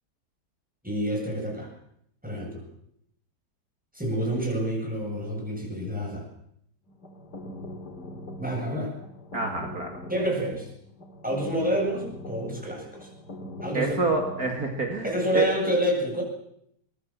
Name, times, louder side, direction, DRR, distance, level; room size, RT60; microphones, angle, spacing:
voice 1, 0.8-1.7 2.2-2.6 3.9-6.3 8.4-8.9 10.1-10.7 11.2-13.1 13.6-13.9 15.0-16.2, equal, 5° right, 0 dB, 7.9 m, -28 dB
sound 1, 6.9-14.7, left 1 dB, 70° left, 3.5 m, -41 dB
voice 2, 9.3-10.0 13.7-15.5, right 3 dB, 55° right, 2 dB, 3.1 m, -27 dB
23.5 x 20.5 x 7.6 m, 0.73 s
omnidirectional pair, 1.9 m